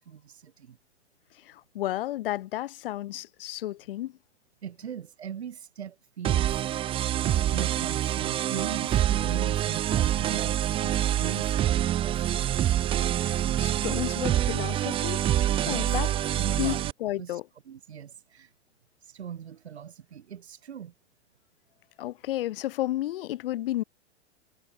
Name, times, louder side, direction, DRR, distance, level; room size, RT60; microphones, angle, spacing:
voice 1, 0.1-0.8 4.6-6.9 7.2-12.5 15.6-16.0 16.4-16.9 17.2-17.4 17.7-18.5 19.0-20.9, right 8 dB, 70° right, 3.4 m, -40 dB
voice 2, 1.4-4.1 13.2-15.3 15.7-16.1 16.6-17.5 22.0-23.8, left 15 dB, 55° left, 1.4 m, -32 dB
sound 1, 6.2-16.9, right 12 dB, 15° right, 0.6 m, -26 dB
hypercardioid pair, 115°, 34 cm